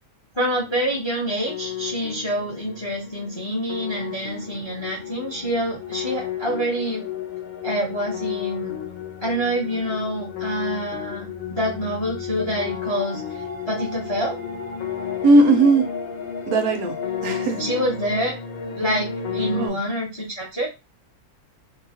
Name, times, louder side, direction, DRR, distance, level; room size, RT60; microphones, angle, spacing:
voice 1, 0.3-7.0 7.6-8.7 9.2-13.2 13.7-14.4 17.6-18.4 18.7-20.7, equal, 35° left, 0.4 m, -26 dB
sound 1, 0.5-19.7, left 7 dB, 70° left, 0.9 m, -32 dB
voice 2, 15.2-15.9 16.5-17.0 17.2-17.7 19.5-19.8, right 2 dB, 75° right, 1.0 m, -17 dB
2.8 x 2.0 x 2.7 m
omnidirectional pair, 1.6 m